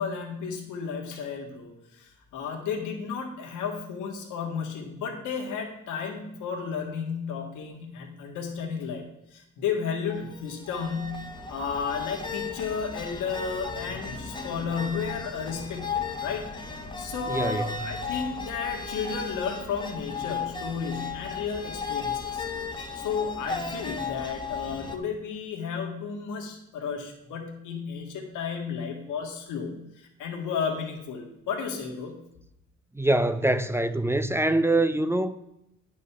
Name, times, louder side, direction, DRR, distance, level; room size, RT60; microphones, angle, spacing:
voice 1, 0.0-9.0 9.3-16.5 17.0-22.5 22.9-32.2, left 6 dB, 85° left, 1.8 m, -33 dB
sound 1, 10.1-25.0, left 5 dB, 15° left, 1.3 m, -35 dB
voice 2, 17.3-17.7 32.9-35.4, right 1 dB, 10° right, 0.6 m, -24 dB
9.5 x 5.5 x 6.8 m
cardioid pair, 90°, 30 cm